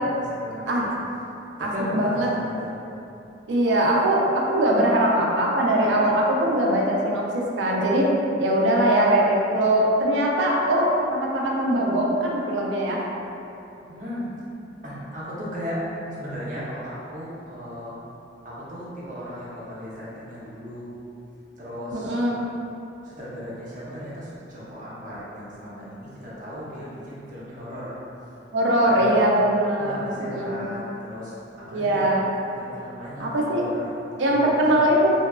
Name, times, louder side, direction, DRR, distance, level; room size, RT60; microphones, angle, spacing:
voice 1, 0.4-0.9 1.6-2.7 13.9-14.2 14.8-15.8 16.2-18.0 18.4-20.9 21.6-22.2 23.0-28.0 28.8-29.1 29.8-31.3 31.7-32.0 32.6-34.9, equal, 45° right, -8 dB, 0.7 m, -36 dB
voice 2, 1.6-2.3 3.5-8.1 8.4-13.0 21.9-22.4 28.5-30.7 31.7-32.2 33.2-33.6 34.2-35.1, right 1 dB, 80° right, -2 dB, 0.4 m, -21 dB
2.7 x 2.2 x 2.3 m, 2.8 s
head